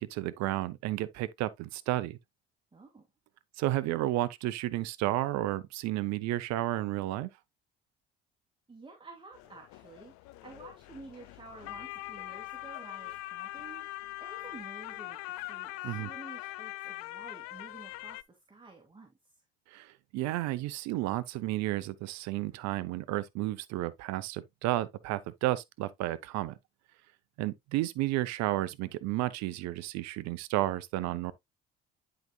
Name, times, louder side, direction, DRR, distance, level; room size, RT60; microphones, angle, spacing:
voice 1, 0.0-2.2 3.6-7.3 15.8-16.1 19.7-26.6 27.4-31.3, right 16 dB, 60° right, 0.8 m, -32 dB
voice 2, 2.7-3.1 8.7-19.4, right 3 dB, 15° right, 2.3 m, -51 dB
sound 1, 9.3-18.2, left 18 dB, 65° left, 0.6 m, -42 dB
10.5 x 5.1 x 2.3 m
hypercardioid pair, 55°, 31 cm